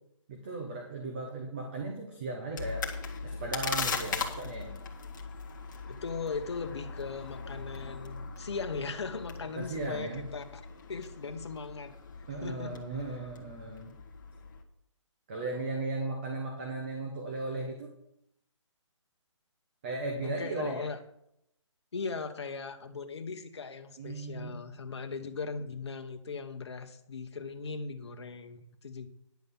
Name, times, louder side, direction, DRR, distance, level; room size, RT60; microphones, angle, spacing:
voice 1, 0.3-2.9 3.2-4.7 9.5-10.3 12.3-13.9 15.3-17.9 19.8-20.9 24.0-24.6, right 2 dB, 20° right, 1 dB, 1.0 m, -36 dB
sound 1, 2.6-14.6, left 5 dB, 40° left, 1.5 m, -39 dB
voice 2, 5.9-10.6 10.9-12.0 12.4-12.8 20.2-21.0 21.9-29.1, left 4 dB, 55° left, 6 dB, 1.2 m, -38 dB
10.5 x 7.6 x 5.5 m, 0.78 s
hypercardioid pair, 175°, 16 cm